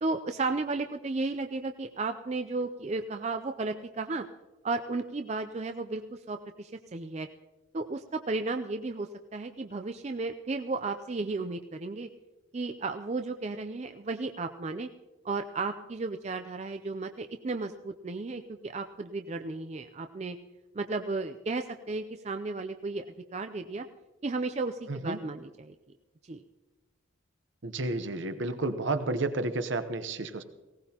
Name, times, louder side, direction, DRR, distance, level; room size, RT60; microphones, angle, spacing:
voice 1, 0.0-4.2 4.6-7.3 7.7-12.1 12.5-14.9 15.2-20.4 20.7-23.0 23.3-23.9 24.2-25.7 26.3-26.4, right 3 dB, 35° right, 7 dB, 0.4 m, -34 dB
voice 2, 24.9-25.2 27.6-30.4, right 2 dB, 65° right, 10 dB, 0.9 m, -31 dB
18.5 x 17.5 x 2.9 m, 1.2 s
head